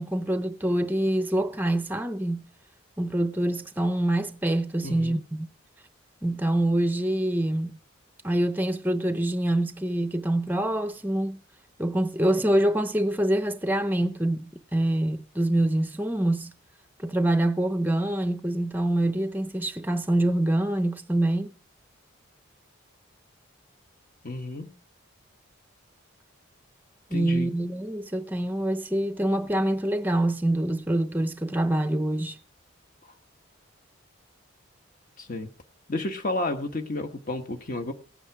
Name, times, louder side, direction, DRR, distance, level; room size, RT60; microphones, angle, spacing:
voice 1, 0.0-2.4 3.0-5.5 6.2-7.8 8.2-11.4 11.8-16.5 17.0-21.5 27.1-32.4, right 1 dB, 10° right, 0.6 m, -25 dB
voice 2, 4.8-5.2 24.2-24.7 27.1-27.5 35.2-35.5 35.9-37.9, left 2 dB, 40° left, 1.2 m, -31 dB
17.0 x 8.9 x 4.7 m
head